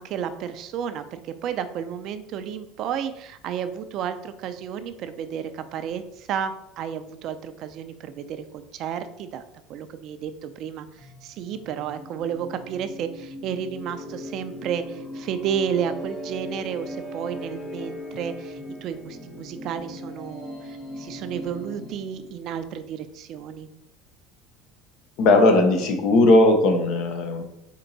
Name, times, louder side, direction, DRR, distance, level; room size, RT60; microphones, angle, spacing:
voice 1, 0.0-9.4 9.7-23.7, right 8 dB, 55° right, 10 dB, 0.4 m, -32 dB
sound 1, 11.0-22.4, left 1 dB, 35° left, 1.0 m, -39 dB
voice 2, 25.2-27.4, left 2 dB, 65° left, 5 dB, 0.8 m, -17 dB
4.5 x 2.8 x 3.9 m, 0.81 s
supercardioid pair, 100°, 0 cm